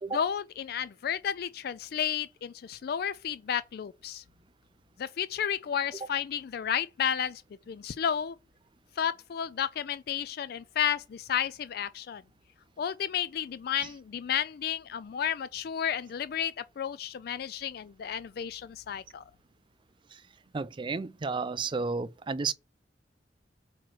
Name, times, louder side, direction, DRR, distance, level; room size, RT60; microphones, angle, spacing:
voice 1, 0.1-4.2 5.0-7.4 7.7-8.4 9.0-12.2 12.8-19.2, left 8 dB, 60° left, 0.3 m, -32 dB
voice 2, 20.5-22.5, right 4 dB, 25° right, 0.4 m, -32 dB
8.7 x 3.1 x 6.2 m
head